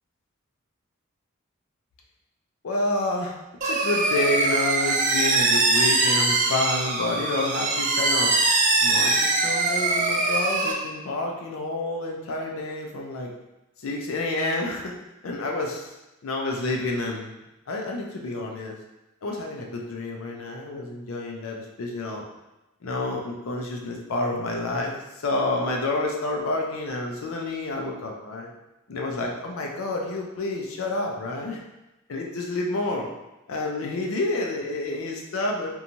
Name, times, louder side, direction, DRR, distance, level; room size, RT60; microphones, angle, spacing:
voice 1, 2.6-3.4 3.6-8.4 8.8-13.3 13.8-14.9 15.2-15.9 16.2-17.3 17.7-18.8 19.2-22.3 22.8-24.9 25.2-28.5 28.9-31.6 32.1-33.1 33.5-35.7, left 2 dB, 70° left, 0 dB, 0.5 m, -29 dB
sound 1, 3.6-10.7, right 3 dB, 35° right, 0.3 m, -22 dB
2.9 x 2.3 x 2.6 m, 0.99 s
head